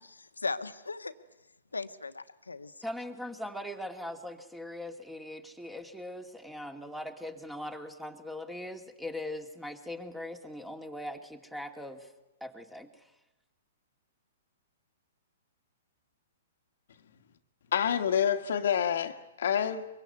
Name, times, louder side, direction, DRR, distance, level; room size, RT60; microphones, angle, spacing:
voice 1, 0.0-1.1 1.7-2.8, left 3 dB, 85° left, 10 dB, 1.4 m, -38 dB
voice 2, 2.8-12.1 12.4-13.1, left 1 dB, 5° right, 6 dB, 2.5 m, -40 dB
voice 3, 17.7-19.9, left 8 dB, 65° left, 7 dB, 1.7 m, -28 dB
24.0 x 23.5 x 9.5 m, 0.99 s
figure-of-eight pair, 115°, 0 cm